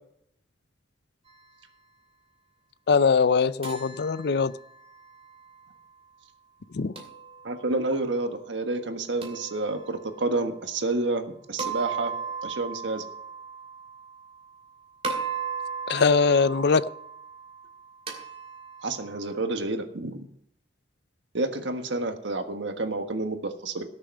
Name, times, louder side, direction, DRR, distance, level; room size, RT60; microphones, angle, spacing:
voice 1, 2.9-4.5 6.7-6.9 15.9-16.9, left 5 dB, 65° left, 0.5 m, -22 dB
sound 1, 3.6-5.7 7.0-8.0 9.2-10.4 11.6-14.7 15.0-19.5, right 6 dB, 35° right, 2.5 m, -37 dB
voice 2, 7.4-11.2 11.5-12.1 12.4-13.0 18.8-20.2 21.3-23.8, right 2 dB, 85° right, 1.5 m, -29 dB
17.5 x 6.9 x 5.4 m
head